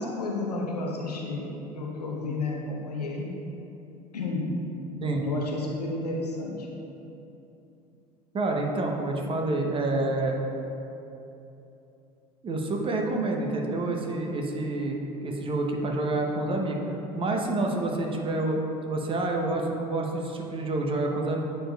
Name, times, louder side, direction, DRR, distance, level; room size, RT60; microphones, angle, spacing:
voice 1, 0.0-3.3 4.1-4.5 5.2-6.8, left 2 dB, 85° left, -1 dB, 0.8 m, -32 dB
voice 2, 8.3-10.4 12.4-15.0 15.2-16.8 17.1-18.6 18.9-21.4, right 2 dB, 25° right, 1 dB, 0.8 m, -28 dB
8.8 x 4.6 x 2.3 m, 2.9 s
figure-of-eight pair, 70°, 20 cm